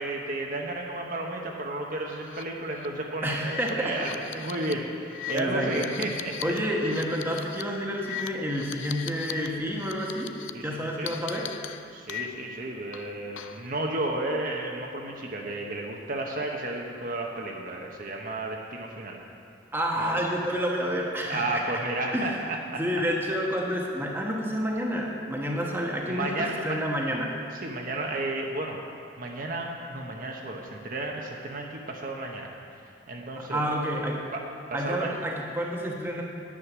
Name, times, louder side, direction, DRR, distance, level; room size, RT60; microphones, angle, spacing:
voice 1, 0.0-6.3 10.5-11.1 11.9-19.2 21.3-22.8 26.1-26.8 27.6-28.8 29.2-32.5 33.1-33.6 34.3-34.4 34.8-35.1, right 2 dB, 45° right, 0 dB, 1.0 m, -32 dB
sound 1, 2.2-2.4 2.7-2.9 3.4-9.5 9.7-10.5 11.1-12.6 12.9-13.7, left 11 dB, 90° left, 0.5 m, -39 dB
voice 2, 3.2-4.0 5.3-5.9 6.4-10.4 10.6-11.6 19.7-21.6 22.1-22.5 22.8-27.3 33.3-34.2 34.7-36.2, equal, 10° right, -1 dB, 1.1 m, -29 dB
10.0 x 9.2 x 6.1 m, 2.5 s
head